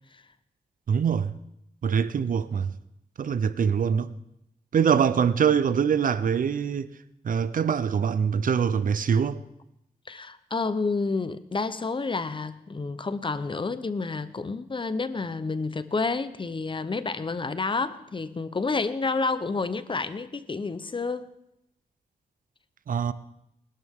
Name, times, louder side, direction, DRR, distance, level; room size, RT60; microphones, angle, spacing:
voice 1, 0.9-1.3 1.8-2.7 3.2-4.1 4.7-6.9 7.2-9.4 22.9-23.1, right 7 dB, 60° right, 0.7 m, -24 dB
voice 2, 10.1-21.3, left 4 dB, 30° left, 0.8 m, -29 dB
20.5 x 12.5 x 3.7 m
cardioid pair, 80°, 16 cm